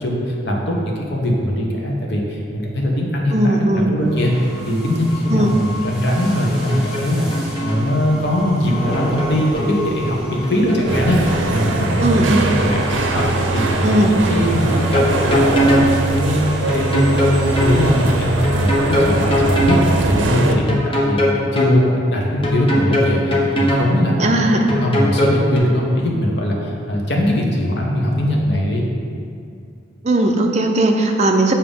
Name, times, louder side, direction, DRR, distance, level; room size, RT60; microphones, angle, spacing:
voice 1, 0.0-4.3 4.6-7.3 7.6-12.8 13.1-16.4 16.7-18.3 18.6-19.8 20.1-28.8, equal, 60° left, -2 dB, 1.0 m, -20 dB
voice 2, 3.3-3.9 5.3-5.5 12.0-12.4 13.8-14.1 24.2-24.7 30.0-31.5, right 1 dB, 35° right, 3 dB, 0.5 m, -17 dB
sound 1, 4.0-18.8, equal, 5° right, 1.0 m, -32 dB
sound 2, 6.4-7.1 7.3-7.9 8.7-9.7 10.4-11.9 12.7-13.3 13.6-13.7 14.4-15.9 16.7-17.8 18.4-19.9 20.7-21.8 22.4-23.9 24.7-25.6, left 1 dB, 30° left, 0.8 m, -20 dB
sound 3, 10.9-20.6, right 3 dB, 80° right, 0.5 m, -21 dB
7.2 x 2.8 x 5.2 m, 2.5 s
head